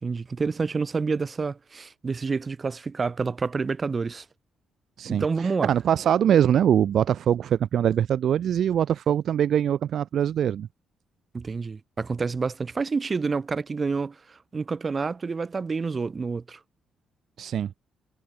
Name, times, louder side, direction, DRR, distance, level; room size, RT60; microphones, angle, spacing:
voice 1, 0.0-4.3 5.1-5.7 11.3-16.6, right 4 dB, 35° right, 3.4 m, -28 dB
voice 2, 5.6-10.7 17.4-17.7, right 9 dB, 65° right, 1.4 m, -22 dB
cardioid pair, 90°, 0 cm